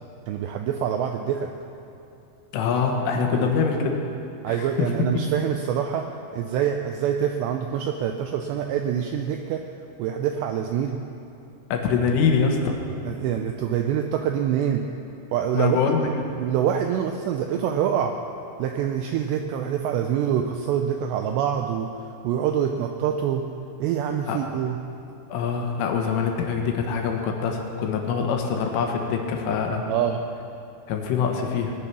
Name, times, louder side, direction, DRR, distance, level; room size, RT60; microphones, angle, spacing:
voice 1, 0.3-1.5 3.3-3.5 4.4-6.0 6.3-9.6 10.0-11.0 13.1-14.8 15.3-15.8 16.4-18.2 18.6-21.9 22.2-23.4 23.8-24.8 29.9-30.2, right 9 dB, 90° right, 4 dB, 2.5 m, -25 dB
voice 2, 2.5-4.0 4.5-4.9 11.7-12.8 15.6-16.1 24.3-24.4 25.3-29.9 30.9-31.7, left 6 dB, 85° left, 2 dB, 3.9 m, -24 dB
19.5 x 10.0 x 6.1 m, 2.6 s
omnidirectional pair, 5.7 m